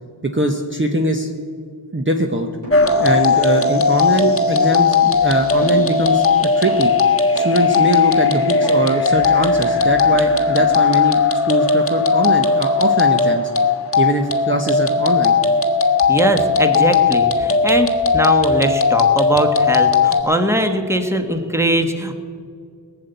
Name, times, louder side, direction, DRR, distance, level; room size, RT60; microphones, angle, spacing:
voice 1, 0.3-1.3 1.9-2.5 3.0-6.9 7.3-11.2 11.4-13.5 14.0-15.3, right 1 dB, 25° right, 3 dB, 1.0 m, -21 dB
sound 1, 2.6-2.9 3.3-7.0 7.3-10.6, equal, 80° right, 4.6 m, -35 dB
sound 2, 2.7-20.2, left 4 dB, 30° left, 1.4 m, -16 dB
voice 2, 16.1-22.1, equal, 5° right, 6 dB, 1.3 m, -20 dB
18.0 x 7.0 x 9.1 m, 2.2 s
wide cardioid pair, 55°, 44 cm